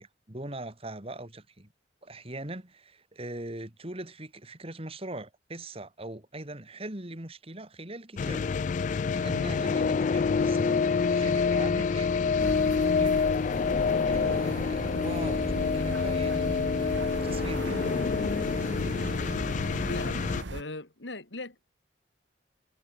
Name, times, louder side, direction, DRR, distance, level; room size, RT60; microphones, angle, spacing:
voice 1, 0.0-1.7 2.0-8.5 8.8-13.2 14.1-17.9, right 1 dB, 30° right, 2.9 m, -41 dB
sound 1, 8.2-20.4, left 5 dB, 40° left, 0.3 m, -27 dB
sound 2, 12.4-20.6, right 2 dB, 80° right, 1.4 m, -37 dB
voice 2, 19.9-21.6, left 2 dB, 75° left, 2.8 m, -39 dB
head